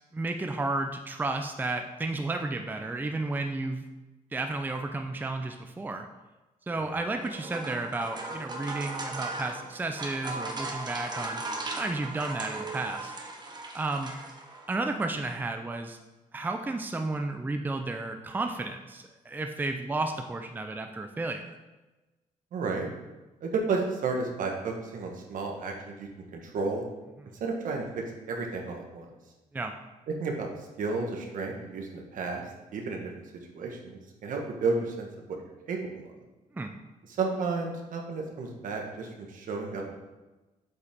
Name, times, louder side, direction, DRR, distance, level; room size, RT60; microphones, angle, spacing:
voice 1, 0.1-3.8 4.3-6.1 6.7-11.4 11.8-13.1 13.7-14.1 14.7-16.0 16.3-21.6 29.5-29.7 36.5-36.7, right 2 dB, 15° right, 5 dB, 0.5 m, -32 dB
sound 1, 7.1-14.7, right 2 dB, 30° right, 1.0 m, -37 dB
voice 2, 22.5-22.9 23.4-26.8 27.4-29.1 30.1-32.4 32.7-33.1 33.5-35.4 35.7-36.0 37.1-39.9, right 4 dB, 70° right, 1 dB, 1.4 m, -32 dB
7.9 x 5.4 x 3.6 m, 1.1 s
cardioid pair, 105°, 14 cm